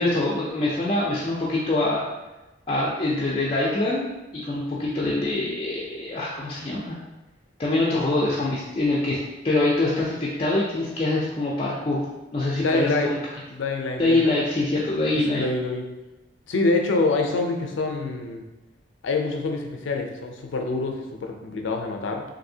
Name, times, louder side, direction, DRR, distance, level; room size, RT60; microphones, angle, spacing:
voice 1, 0.0-2.0 2.7-4.1 4.4-7.0 7.6-9.2 9.4-12.0 12.3-13.2 14.0-15.4, left 2 dB, 30° left, -6 dB, 0.4 m, -24 dB
voice 2, 12.5-13.1 13.5-14.4 15.1-15.9 16.5-18.4 19.0-22.2, left 3 dB, 90° left, 3 dB, 0.5 m, -26 dB
3.3 x 2.6 x 2.7 m, 1.1 s
head